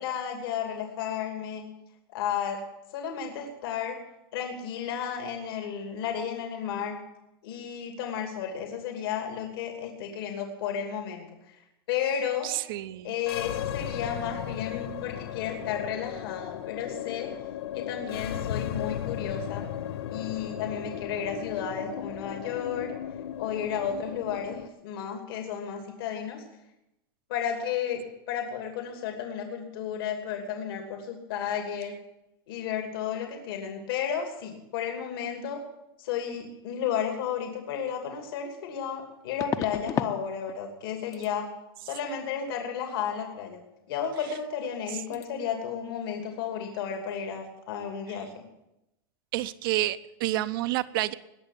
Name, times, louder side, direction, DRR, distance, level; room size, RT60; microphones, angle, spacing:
voice 1, 0.0-1.6 2.1-2.6 2.9-4.0 4.3-7.0 7.4-11.6 11.9-12.5 13.0-17.3 17.7-19.6 20.1-22.9 23.4-26.4 27.3-32.0 32.5-35.6 36.0-41.5 41.9-43.6 43.9-48.4, left 8 dB, 70° left, 3 dB, 2.7 m, -33 dB
voice 2, 12.4-13.1 45.1-45.2 49.3-51.1, right 15 dB, 65° right, 15 dB, 0.8 m, -29 dB
sound 1, 13.2-24.7, left 10 dB, 90° left, 0.7 m, -36 dB
sound 2, 37.9-38.0 39.4-40.2 40.5-40.9 41.1-41.3 44.2-44.4 44.6-44.9 45.1-45.3, left 8 dB, 25° left, 0.7 m, -33 dB
20.5 x 6.8 x 8.4 m, 0.89 s
supercardioid pair, 145°, 12 cm